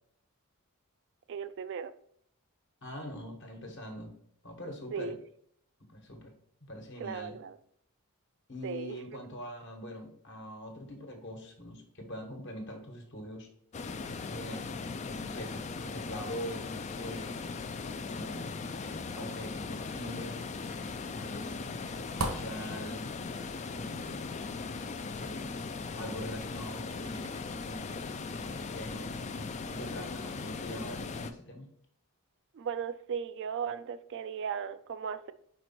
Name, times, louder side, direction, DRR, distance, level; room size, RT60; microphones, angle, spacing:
voice 1, 1.3-1.9 4.9-5.2 7.0-7.6 8.6-9.0 32.5-35.3, right 7 dB, 55° right, 0.3 m, -36 dB
voice 2, 2.8-4.1 4.4-5.2 5.9-6.3 6.7-7.4 8.5-13.5 14.3-14.6 15.0-17.5 17.8-20.4 21.1-23.1 23.7-24.4 25.0-25.5 26.0-27.3 27.6-31.7, equal, 55° left, 1.3 m, -43 dB
sound 1, 13.7-31.3, left 4 dB, 30° left, 0.3 m, -39 dB
sound 2, 18.5-27.7, right 2 dB, 90° right, 1.2 m, -46 dB
5.1 x 4.5 x 4.2 m
head